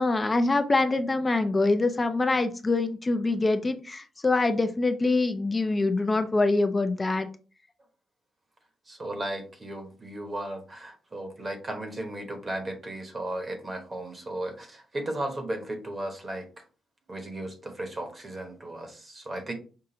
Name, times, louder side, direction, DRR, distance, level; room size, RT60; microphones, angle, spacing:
voice 1, 0.0-7.3, left 3 dB, 20° left, 8 dB, 0.5 m, -24 dB
voice 2, 8.9-16.6 17.1-19.5, right 1 dB, 25° right, 5 dB, 1.0 m, -35 dB
5.6 x 2.5 x 3.8 m, 0.36 s
cardioid pair, 145°, 0 cm